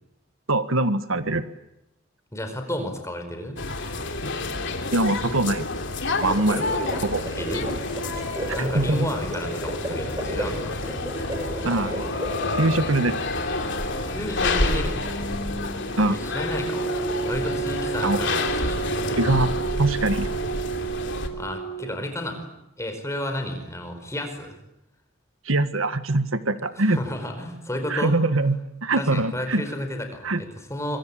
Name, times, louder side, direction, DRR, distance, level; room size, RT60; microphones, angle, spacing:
voice 1, 0.5-1.5 4.9-5.7 6.2-6.6 6.9-7.2 8.7-9.1 11.6-12.0 12.6-13.2 16.0-16.2 18.0-18.2 19.2-19.5 19.8-20.3 25.4-27.0 27.9-29.6 30.2-30.4, right 2 dB, 80° right, 11 dB, 1.6 m, -23 dB
voice 2, 2.3-3.6 7.4-7.7 8.5-10.8 14.1-15.0 16.0-19.2 21.3-22.4 22.8-24.6 26.7-28.1 29.0-31.0, left 1 dB, 15° left, 6 dB, 5.0 m, -32 dB
sound 1, 3.6-21.3, left 2 dB, 60° left, 3.2 m, -29 dB
sound 2, 6.0-12.8, right 1 dB, 15° right, 7.5 m, -33 dB
sound 3, 11.0-22.1, right 4 dB, 45° left, 4.4 m, -32 dB
26.0 x 24.5 x 8.8 m, 0.85 s
head